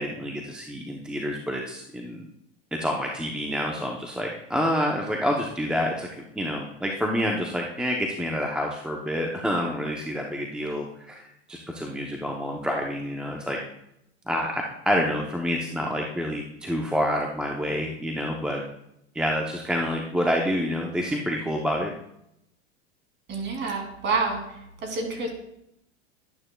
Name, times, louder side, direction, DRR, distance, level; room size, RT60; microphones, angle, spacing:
voice 1, 0.0-2.3 2.7-13.6 14.3-18.6 19.1-21.9, equal, 5° right, 0 dB, 0.7 m, -28 dB
voice 2, 23.3-24.4 24.8-25.3, right 3 dB, 30° right, 2 dB, 2.7 m, -27 dB
11.5 x 10.5 x 2.3 m, 0.79 s
supercardioid pair, 115°, 35 cm